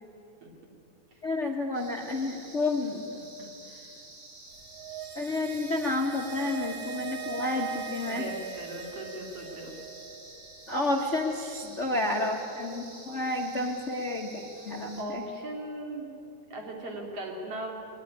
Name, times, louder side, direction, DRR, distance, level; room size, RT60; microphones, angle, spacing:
voice 1, 1.2-3.0 5.1-8.3 10.7-15.2, left 2 dB, 60° left, 3 dB, 0.7 m, -30 dB
sound 1, 1.7-15.0, right 2 dB, 25° left, 6.1 m, -50 dB
voice 2, 3.1-3.9 5.3-5.5 6.4-6.6 8.1-9.8 11.6-12.0 13.5-13.7 15.0-16.1 16.5-17.8, right 1 dB, 50° right, 0 dB, 3.9 m, -39 dB
sound 2, 4.6-10.1 10.3-10.4, right 8 dB, 65° right, 4.6 m, -41 dB
21.0 x 19.5 x 9.8 m, 2.9 s
omnidirectional pair, 3.7 m